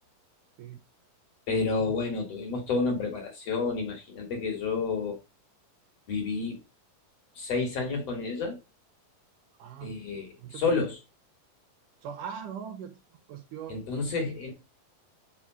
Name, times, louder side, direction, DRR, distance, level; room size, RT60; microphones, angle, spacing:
voice 1, 1.5-5.2 6.1-6.6 7.4-8.6 9.8-11.0 13.7-14.5, left 4 dB, 50° left, 2.6 m, -30 dB
voice 2, 9.6-10.9 12.0-13.0 13.3-13.8, right 8 dB, 70° right, 2.3 m, -41 dB
5.6 x 4.8 x 6.1 m
omnidirectional pair, 4.1 m